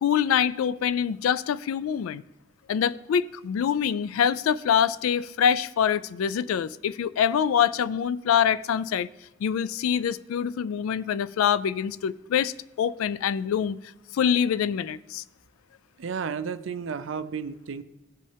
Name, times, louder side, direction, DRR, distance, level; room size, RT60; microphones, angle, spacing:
voice 1, 0.0-2.2 2.7-9.1 9.4-13.8 14.1-15.2, left 8 dB, 85° left, 0.3 m, -25 dB
voice 2, 16.0-17.8, right 6 dB, 60° right, 0.4 m, -32 dB
16.0 x 5.3 x 3.3 m
head